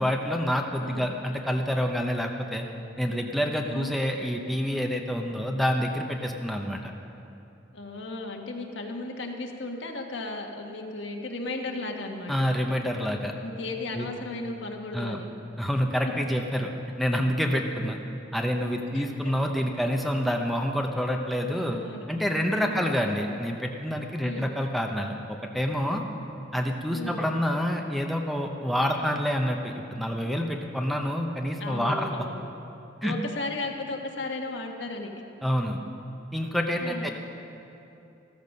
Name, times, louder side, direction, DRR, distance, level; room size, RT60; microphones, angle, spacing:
voice 1, 0.0-2.6 3.0-6.9 12.3-13.3 13.9-14.1 14.9-15.2 15.6-16.7 17.0-18.0 18.3-21.8 22.1-26.0 26.5-32.2 33.0-33.1 35.4-35.8 36.3-37.1, equal, ahead, 1 dB, 0.8 m, -27 dB
voice 2, 0.8-1.1 3.7-4.0 7.7-12.3 13.4-15.3 18.9-19.1 21.7-22.1 22.6-22.9 24.2-24.5 26.9-27.2 31.6-32.4 33.0-35.1 36.8-37.1, left 2 dB, 65° left, 2 dB, 1.4 m, -35 dB
14.5 x 14.0 x 5.3 m, 2.8 s
head